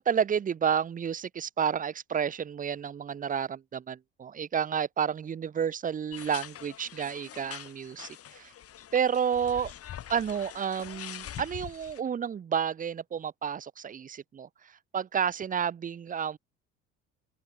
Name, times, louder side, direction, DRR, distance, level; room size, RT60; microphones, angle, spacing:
voice 1, 0.0-8.5 8.9-9.7 10.1-14.5 14.9-16.4, right 7 dB, 25° right, 0.6 m, -30 dB
sound 1, 6.1-12.0, left 10 dB, 50° left, 2.8 m, -44 dB
open air
supercardioid pair, 80°, 31 cm